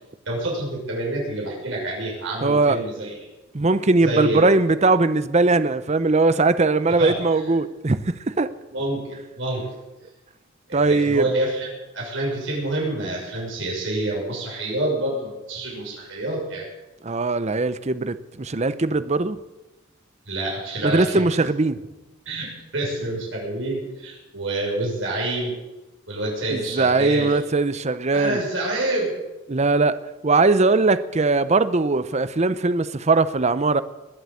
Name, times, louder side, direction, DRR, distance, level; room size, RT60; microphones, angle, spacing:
voice 1, 0.2-3.1 4.0-4.4 6.9-7.4 8.7-9.6 10.7-11.7 11.9-16.6 20.3-21.2 22.2-22.5 22.7-25.5 26.1-27.3 28.1-29.1, right 1 dB, 70° right, 6.6 m, -27 dB
voice 2, 2.4-2.8 3.5-8.5 10.7-11.2 17.0-19.4 20.8-21.8 26.5-28.4 29.5-30.0 30.2-33.8, right 3 dB, 35° right, 0.7 m, -20 dB
21.0 x 7.9 x 8.7 m
head